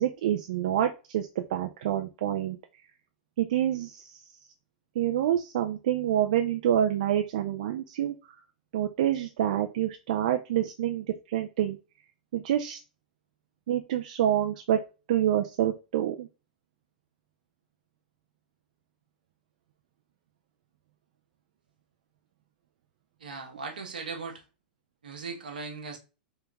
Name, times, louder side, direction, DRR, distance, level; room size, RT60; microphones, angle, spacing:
voice 1, 0.0-2.6 3.4-4.2 5.0-8.1 8.7-11.8 12.3-12.8 13.7-14.8 15.1-16.3, right 11 dB, 65° right, 0.5 m, -27 dB
voice 2, 23.2-24.4 25.0-26.0, right 4 dB, 80° right, 1.1 m, -38 dB
3.5 x 3.4 x 3.0 m
hypercardioid pair, 100°, 5 cm